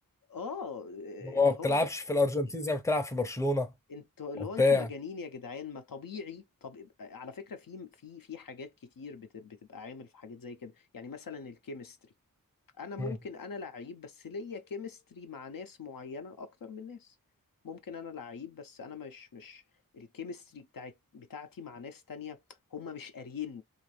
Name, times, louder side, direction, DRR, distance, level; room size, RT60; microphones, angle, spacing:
voice 1, 0.3-2.2 3.9-12.1 12.8-17.1 17.6-19.6 19.9-22.4 22.7-23.6, left 5 dB, 75° left, 0.5 m, -42 dB
voice 2, 1.2-3.7 4.6-4.9 13.0-13.1, left 3 dB, 10° left, 0.5 m, -27 dB
2.5 x 2.4 x 3.1 m
wide cardioid pair, 50°, 35 cm